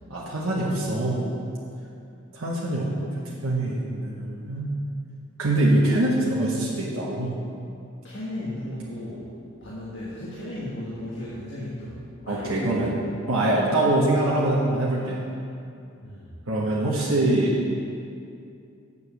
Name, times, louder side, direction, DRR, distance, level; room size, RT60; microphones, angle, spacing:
voice 1, 0.1-1.2 2.3-3.1 3.4-4.7 5.4-7.3 12.3-12.9 13.3-15.2 16.5-17.5, right 1 dB, 90° right, -5 dB, 1.3 m, -24 dB
voice 2, 8.0-9.3 9.6-13.0 16.0-16.3, left 1 dB, 60° left, -8 dB, 1.5 m, -35 dB
7.2 x 6.8 x 6.8 m, 2.6 s
head